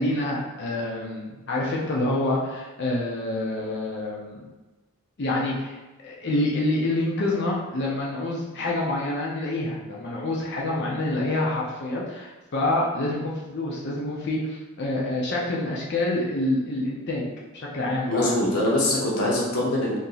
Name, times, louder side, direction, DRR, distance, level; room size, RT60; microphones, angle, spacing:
voice 1, 0.0-4.5 5.2-5.8 6.0-17.3 17.5-18.4, left 1 dB, 50° left, -3 dB, 0.5 m, -27 dB
voice 2, 18.1-20.0, left 1 dB, 90° left, -4 dB, 0.7 m, -23 dB
2.8 x 2.6 x 3.9 m, 1.1 s
head